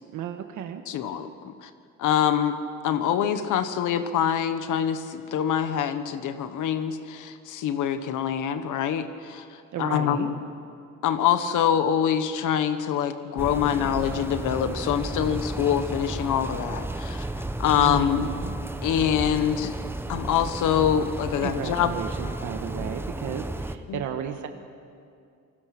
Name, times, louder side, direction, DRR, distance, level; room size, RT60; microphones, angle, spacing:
voice 1, 0.1-0.8 9.7-10.4 17.7-18.5 21.4-24.5, right 9 dB, 80° right, 6 dB, 1.4 m, -34 dB
voice 2, 0.9-1.7 2.0-2.6 2.8-10.4 11.0-17.3 17.6-18.3 18.8-19.7 20.1-22.0 23.9-24.0, left 9 dB, 85° left, 10 dB, 1.2 m, -25 dB
sound 1, 13.4-23.7, right 1 dB, 5° right, 1.0 m, -33 dB
28.0 x 19.5 x 6.0 m, 2.4 s
cardioid pair, 90°, 30 cm